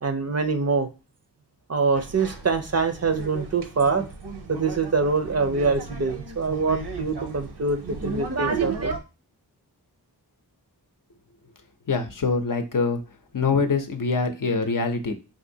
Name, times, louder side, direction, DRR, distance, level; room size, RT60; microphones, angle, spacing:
voice 1, 0.0-0.9 1.7-4.0 4.5-8.9, right 4 dB, 40° right, 8 dB, 0.5 m, -24 dB
sound 1, 2.0-9.0, right 3 dB, 75° right, 0.7 m, -36 dB
voice 2, 11.9-13.0 13.3-15.1, left 4 dB, 55° left, 6 dB, 0.6 m, -24 dB
3.8 x 2.7 x 2.7 m, 0.29 s
wide cardioid pair, 50°, 40 cm